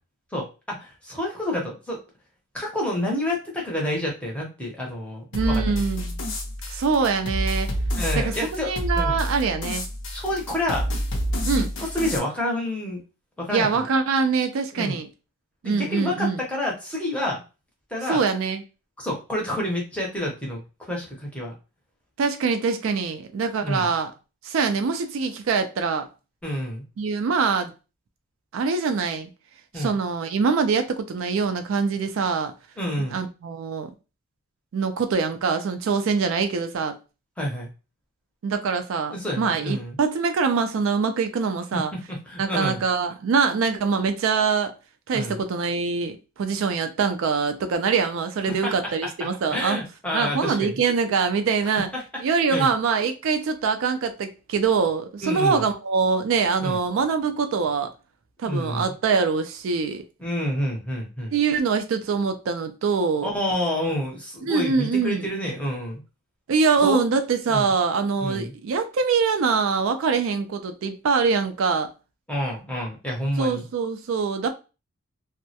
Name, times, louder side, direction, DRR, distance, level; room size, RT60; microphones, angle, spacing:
voice 1, 0.3-2.0 2.5-5.8 7.9-9.2 10.1-10.9 11.5-13.0 13.4-13.8 14.7-15.0 15.6-17.4 17.9-18.2 19.0-21.5 23.6-23.9 26.4-26.8 29.7-30.0 32.8-33.2 37.4-37.7 39.1-40.0 41.7-42.8 45.1-45.4 48.5-48.9 49.5-50.8 51.9-52.0 52.5-52.7 55.2-55.6 56.6-56.8 58.4-58.9 60.2-61.3 63.2-66.0 66.8-67.0 67.5-67.7 68.2-68.5 72.3-73.6, left 1 dB, 5° left, 0.6 m, -29 dB
sound 1, 5.3-12.2, equal, 55° left, 0.5 m, -28 dB
voice 2, 5.3-6.2 6.7-7.7 8.2-9.8 11.4-11.7 13.5-15.1 15.6-16.4 18.1-18.6 22.2-24.1 24.4-26.1 27.0-27.7 28.5-29.3 29.7-32.5 33.1-33.9 34.7-36.9 38.4-41.9 42.4-44.7 45.1-49.8 50.1-51.9 52.2-57.9 58.4-60.0 61.3-63.3 64.4-65.3 66.5-71.9 73.4-74.5, right 5 dB, 60° right, 0.3 m, -24 dB
2.2 x 2.0 x 2.7 m
head